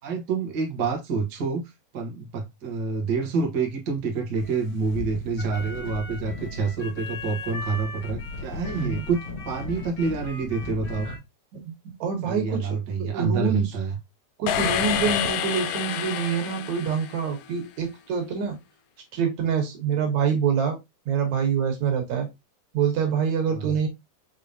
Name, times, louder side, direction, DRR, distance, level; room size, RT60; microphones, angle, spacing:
voice 1, 0.0-11.1 12.2-14.0 23.5-23.7, right 4 dB, 80° right, 0.9 m, -28 dB
sound 1, 4.4-11.2, left 3 dB, 40° left, 2.2 m, -36 dB
voice 2, 12.0-13.6 14.4-18.6 19.1-20.8 21.1-22.3 22.7-23.9, right 7 dB, 65° right, 2.3 m, -26 dB
sound 2, 14.5-17.6, left 10 dB, 80° left, 2.1 m, -28 dB
5.4 x 3.4 x 2.6 m
omnidirectional pair, 3.9 m